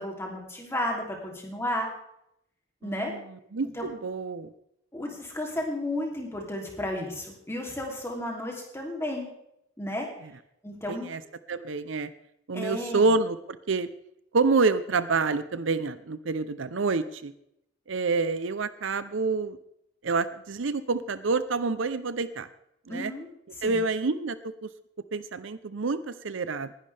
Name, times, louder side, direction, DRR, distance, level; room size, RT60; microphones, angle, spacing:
voice 1, 0.0-1.9 2.8-3.1 3.8-3.9 4.9-9.3 9.8-10.1 10.6-11.1 12.5-13.0 22.9-23.3 23.6-23.8, left 1 dB, 15° left, 0 dB, 3.0 m, -33 dB
voice 2, 2.8-4.5 10.2-10.3 10.9-11.2 11.5-12.1 12.5-13.9 14.3-17.3 17.9-19.6 20.0-22.5 22.9-23.1 23.6-24.7 25.1-26.7, right 4 dB, 75° right, 14 dB, 0.7 m, -28 dB
19.0 x 11.0 x 3.4 m, 0.78 s
head